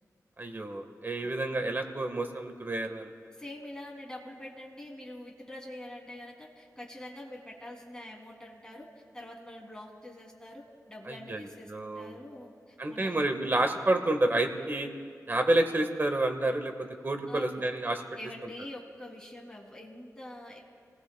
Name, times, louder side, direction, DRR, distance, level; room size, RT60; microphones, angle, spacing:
voice 1, 0.4-3.1 11.1-12.2 12.8-14.9 15.3-16.7 17.0-18.0, right 2 dB, 35° right, 4 dB, 1.5 m, -29 dB
voice 2, 3.3-8.9 9.1-13.2 17.3-17.7 18.2-20.6, left 1 dB, 10° left, -1 dB, 3.0 m, -45 dB
29.5 x 18.5 x 2.3 m, 2.1 s
wide cardioid pair, 85°, 6 cm